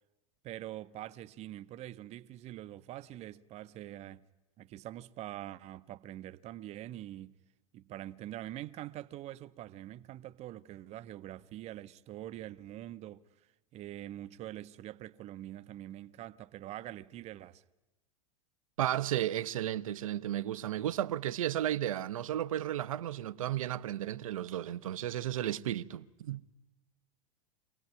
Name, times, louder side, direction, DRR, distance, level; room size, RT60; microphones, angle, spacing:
voice 1, 0.4-4.2 4.6-7.3 7.7-13.2 13.7-17.6, right 13 dB, 40° right, 0.7 m, -44 dB
voice 2, 18.8-26.4, right 12 dB, 70° right, 0.7 m, -33 dB
25.0 x 17.5 x 9.6 m
hypercardioid pair, 90°, 18 cm